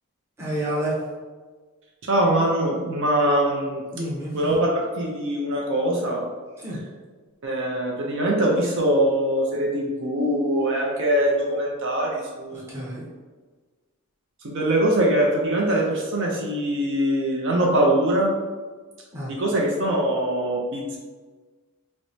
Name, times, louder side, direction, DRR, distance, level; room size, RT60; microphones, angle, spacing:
voice 1, 0.4-1.0 3.9-4.4 6.6-6.8 12.5-13.1 19.1-19.3, right 1 dB, 10° right, -7 dB, 0.8 m, -29 dB
voice 2, 2.0-3.8 4.3-6.2 7.4-12.9 14.4-18.3 19.3-21.0, right 1 dB, 55° right, -1 dB, 0.5 m, -23 dB
4.6 x 2.1 x 2.6 m, 1.4 s
head